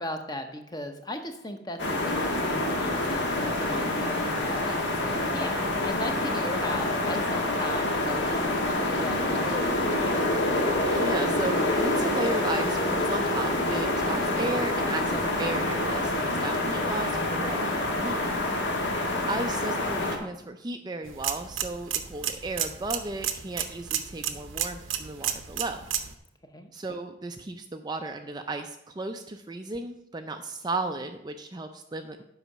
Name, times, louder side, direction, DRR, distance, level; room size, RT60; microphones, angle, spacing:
voice 1, 0.0-8.2 8.7-10.4 18.5-18.8 26.5-26.7, left 1 dB, 20° left, 6 dB, 0.8 m, -37 dB
sound 1, 1.8-20.2, left 1 dB, 65° left, 1.5 m, -27 dB
voice 2, 10.8-18.2 19.2-25.8 26.7-32.2, right 2 dB, 20° right, 6 dB, 0.4 m, -35 dB
sound 2, 21.0-26.1, right 10 dB, 85° right, 0.8 m, -32 dB
8.1 x 5.5 x 6.0 m, 0.85 s
head